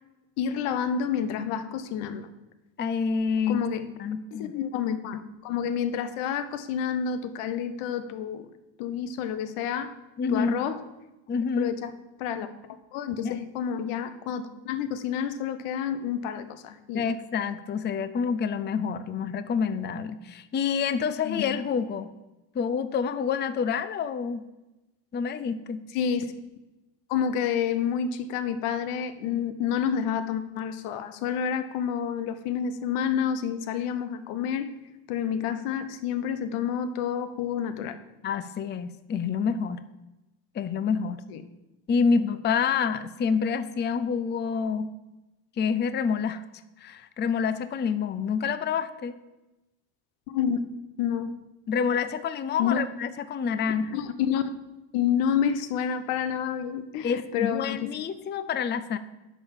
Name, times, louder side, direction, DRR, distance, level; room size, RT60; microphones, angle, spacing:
voice 1, 0.4-2.3 3.5-3.9 4.3-8.5 8.8-10.0 10.3-10.8 11.6-11.9 12.2-12.5 12.9-17.1 21.2-21.5 25.9-26.3 27.1-34.7 35.1-38.0 41.3-41.4 50.3-50.6 51.0-51.3 52.6-52.8 53.9-54.4 54.9-57.9, left 8 dB, 85° left, 12 dB, 0.9 m, -29 dB
voice 2, 2.8-3.6 4.0-4.5 10.2-10.6 11.3-11.7 13.2-13.4 16.9-22.1 22.5-24.4 25.1-25.8 38.2-39.8 40.5-41.2 41.9-44.9 45.6-46.4 46.8-49.2 51.7-54.0 57.0-59.0, left 6 dB, 25° left, 13 dB, 0.4 m, -27 dB
10.5 x 3.9 x 7.1 m, 1.0 s
cardioid pair, 100°, 50 cm